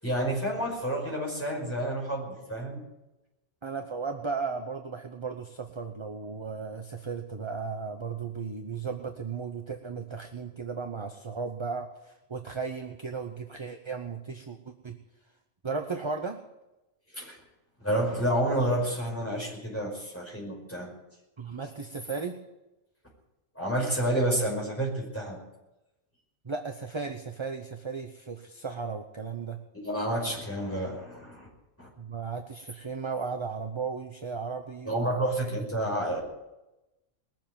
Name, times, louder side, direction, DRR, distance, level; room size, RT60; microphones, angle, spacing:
voice 1, 0.0-2.8 17.1-17.4 17.8-20.9 23.6-25.4 29.7-31.5 31.8-31.9 34.9-36.2, right 1 dB, 10° left, -2 dB, 5.3 m, -29 dB
voice 2, 3.6-15.0 15.6-16.4 21.4-22.4 26.4-29.6 32.0-35.2, right 5 dB, 25° right, 5 dB, 0.8 m, -35 dB
20.5 x 7.7 x 9.1 m, 0.99 s
omnidirectional pair, 1.3 m